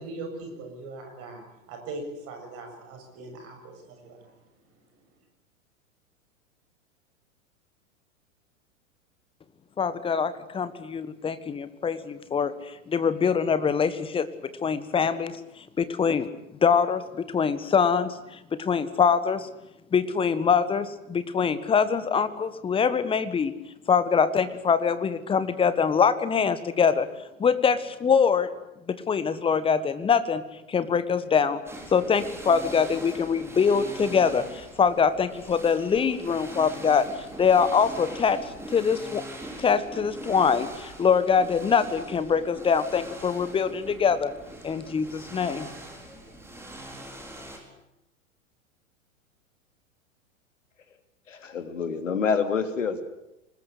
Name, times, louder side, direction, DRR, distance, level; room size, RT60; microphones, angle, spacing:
voice 1, 0.0-4.3, right 2 dB, 35° right, 4 dB, 7.4 m, -40 dB
voice 2, 9.8-14.3 14.6-16.3 16.6-19.5 19.9-23.5 23.9-27.1 27.4-28.5 28.9-30.4 30.7-31.6 31.9-37.1 37.4-39.2 39.6-44.3 44.6-45.7, left 6 dB, 15° left, 14 dB, 1.5 m, -24 dB
sound 1, 31.7-47.6, right 1 dB, 5° right, 4.7 m, -42 dB
voice 3, 51.3-53.0, left 6 dB, 65° left, 8 dB, 3.1 m, -27 dB
24.5 x 20.5 x 8.3 m, 0.89 s
figure-of-eight pair, 95°, 40 cm